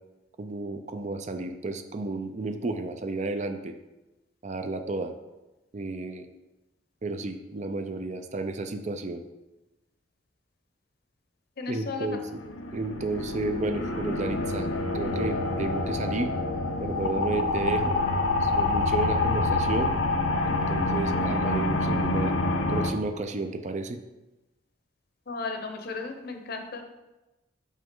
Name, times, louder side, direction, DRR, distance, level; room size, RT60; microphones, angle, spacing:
voice 1, 0.4-3.7 4.4-5.1 5.7-6.3 7.0-9.2 11.7-12.4 12.7-14.7 14.9-16.3 16.8-18.0 18.4-20.0 20.4-22.3 22.7-24.0, right 2 dB, 35° right, 7 dB, 0.4 m, -32 dB
voice 2, 11.6-12.1 25.3-26.8, left 4 dB, 50° left, 5 dB, 0.8 m, -35 dB
sound 1, 12.2-22.9, left 2 dB, 90° left, 0.7 m, -27 dB
6.2 x 5.3 x 3.8 m, 1.0 s
head